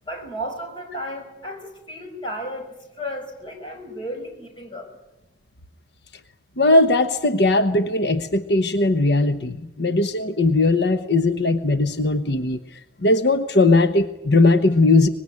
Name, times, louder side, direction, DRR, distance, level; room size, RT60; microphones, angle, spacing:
voice 1, 0.1-4.9, equal, 25° left, 3 dB, 5.3 m, -34 dB
voice 2, 6.6-12.6 13.0-15.1, left 2 dB, 75° left, 10 dB, 1.1 m, -19 dB
24.5 x 20.5 x 9.8 m, 0.93 s
head